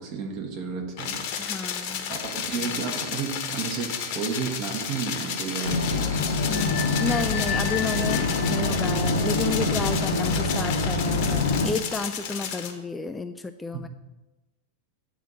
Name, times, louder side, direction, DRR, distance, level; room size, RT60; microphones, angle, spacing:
voice 1, 0.0-6.1 13.7-13.9, right 6 dB, 40° right, 3 dB, 1.3 m, -33 dB
sound 1, 1.0-12.7, left 8 dB, 45° left, 1.0 m, -32 dB
voice 2, 1.4-2.1 6.5-13.9, left 3 dB, 10° left, 8 dB, 0.3 m, -32 dB
sound 2, 2.2-12.8, left 6 dB, 85° right, 2.3 m, -39 dB
sound 3, 5.6-11.7, left 3 dB, 70° left, 0.9 m, -25 dB
9.2 x 3.9 x 6.2 m, 1.1 s
figure-of-eight pair, 90°, 0 cm